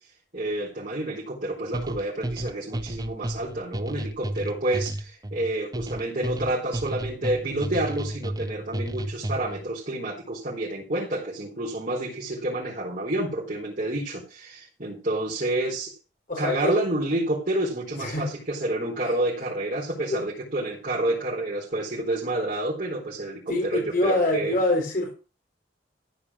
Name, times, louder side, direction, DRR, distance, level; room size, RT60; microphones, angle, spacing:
voice 1, 0.3-16.0 16.4-24.6, right 1 dB, 45° right, -6 dB, 4.3 m, -29 dB
sound 1, 1.7-9.7, right 1 dB, 20° right, 0.8 m, -32 dB
voice 2, 16.3-16.7 17.9-18.3 20.1-20.2 23.5-25.1, left 2 dB, 50° left, 0 dB, 4.1 m, -25 dB
14.5 x 5.1 x 7.3 m, 0.34 s
head